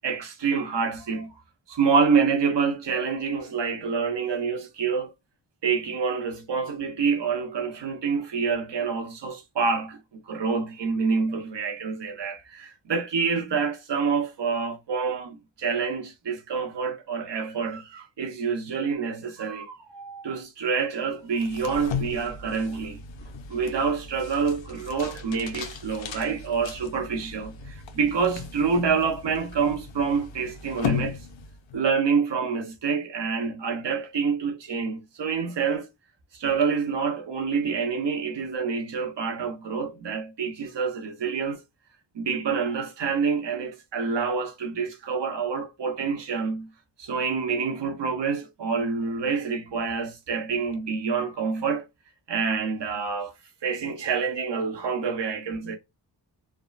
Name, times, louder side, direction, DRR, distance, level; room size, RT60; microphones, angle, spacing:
voice 1, 0.0-1.3 1.7-5.1 5.6-10.0 10.3-23.0 23.5-31.2 31.7-35.8 36.3-41.6 42.1-46.7 47.0-51.8 52.3-53.3 53.6-55.8, right 5 dB, 65° right, 1.1 m, -27 dB
sound 1, 21.3-31.9, left 6 dB, 75° left, 0.7 m, -36 dB
3.5 x 2.1 x 2.5 m
cardioid pair, 75°, 45 cm